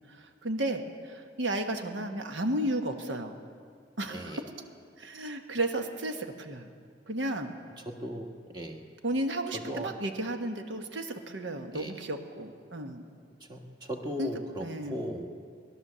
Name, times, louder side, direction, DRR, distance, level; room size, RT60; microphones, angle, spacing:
voice 1, 0.1-3.4 4.0-4.4 5.0-6.7 7.1-7.5 9.0-13.0 14.2-14.3 14.6-15.0, right 1 dB, 80° right, 6 dB, 1.2 m, -33 dB
voice 2, 4.1-4.4 8.0-8.3 8.5-8.8 9.5-9.9 11.7-12.0 13.5-15.4, equal, 25° right, 2 dB, 1.4 m, -37 dB
18.0 x 11.5 x 6.8 m, 2.2 s
head